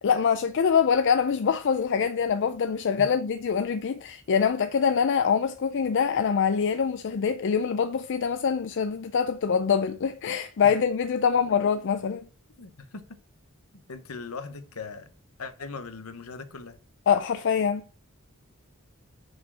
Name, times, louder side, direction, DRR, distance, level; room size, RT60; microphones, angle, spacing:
voice 1, 0.0-12.2 17.1-17.8, left 6 dB, 55° left, 0.4 m, -24 dB
voice 2, 12.6-13.1 13.9-15.1 15.4-16.8, left 4 dB, 70° left, 0.9 m, -39 dB
6.2 x 4.9 x 6.1 m
head